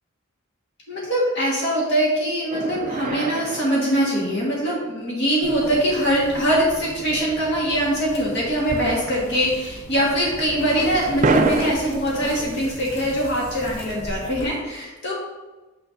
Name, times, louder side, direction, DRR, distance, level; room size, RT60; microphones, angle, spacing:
voice 1, 0.9-15.1, equal, 60° left, -4 dB, 1.6 m, -22 dB
sound 1, 2.5-5.0 8.7-9.4 9.7-9.8 11.2-11.7, right 4 dB, 40° right, 0.3 m, -25 dB
sound 2, 5.4-14.5, equal, 80° left, 1.4 m, -37 dB
6.7 x 6.3 x 2.6 m, 1.1 s
head